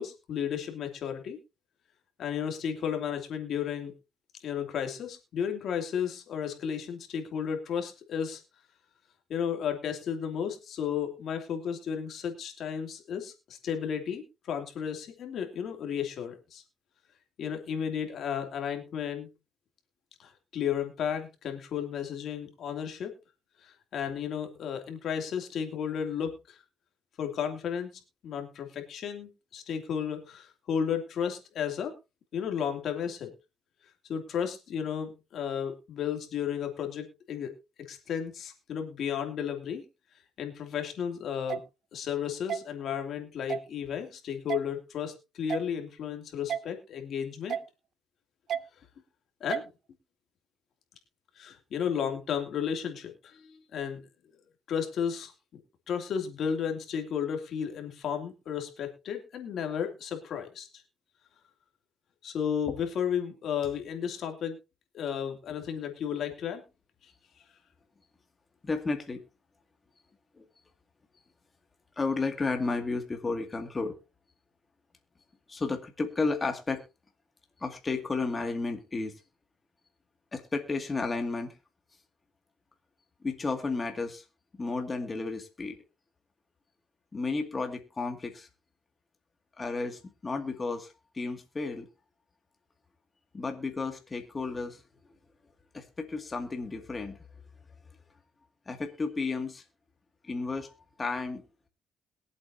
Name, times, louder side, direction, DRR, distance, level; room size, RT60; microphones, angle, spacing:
voice 1, 0.0-1.4 2.2-3.9 4.4-8.4 9.3-16.6 17.4-19.3 20.2-23.1 23.6-26.6 27.2-27.9 28.2-31.9 32.3-33.3 34.1-37.5 37.8-39.8 40.4-41.6 41.9-47.6 49.4-49.6 51.4-54.0 54.7-55.6 55.9-60.7 62.2-64.6 64.9-66.6, left 8 dB, 70° left, 4 dB, 2.7 m, -33 dB
sound 1, 41.5-41.6 42.5-42.6 43.5-43.7 44.5-44.6 45.5-45.7 46.5-46.6 47.5-47.7 48.5-48.6 49.5-49.7, right 8 dB, 65° right, 0.5 m, -31 dB
voice 2, 68.6-69.2 70.4-70.5 72.0-74.0 75.5-76.8 77.6-79.1 80.3-81.5 83.2-84.2 84.6-85.8 87.1-88.5 89.6-91.9 93.3-94.8 95.7-97.2 98.7-99.6 100.2-100.7 101.0-101.4, left 3 dB, 30° left, 5 dB, 2.2 m, -32 dB
22.0 x 8.1 x 2.8 m, 0.27 s
cardioid pair, 90°, 0 cm